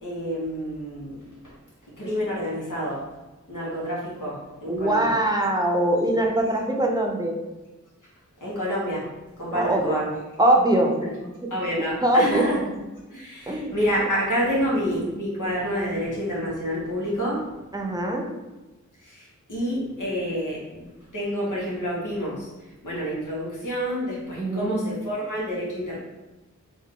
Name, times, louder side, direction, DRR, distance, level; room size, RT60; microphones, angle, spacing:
voice 1, 0.0-1.6 2.0-3.1 3.5-5.2 8.4-9.1 9.4-10.0 11.0-11.2 11.5-12.6 13.1-17.5 19.0-22.5 22.8-26.0, equal, 80° left, -6 dB, 1.4 m, -28 dB
voice 2, 4.7-7.4 9.5-10.0 10.4-10.9 11.4-12.5 13.5-13.8 17.7-18.3 24.4-24.8, right 1 dB, 15° right, 1 dB, 0.6 m, -22 dB
3.5 x 2.7 x 3.8 m, 1.1 s
wide cardioid pair, 60°, 31 cm